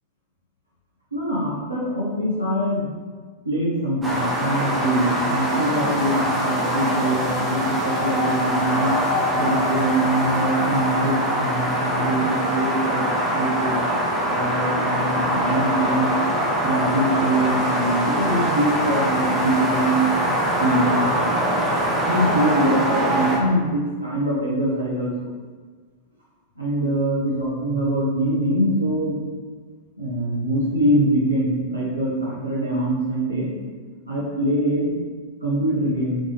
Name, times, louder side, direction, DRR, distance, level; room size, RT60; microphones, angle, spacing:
voice 1, 1.1-2.9 3.4-8.9 9.3-13.8 14.3-16.1 16.6-20.1 20.5-21.1 22.0-25.3 26.6-29.2 30.0-33.5 34.0-34.9 35.4-36.2, right 1 dB, 85° right, -6 dB, 1.1 m, -23 dB
sound 1, 4.0-23.4, equal, 10° right, 1.1 m, -23 dB
3.9 x 3.7 x 3.3 m, 1.5 s
figure-of-eight pair, 90°, 0 cm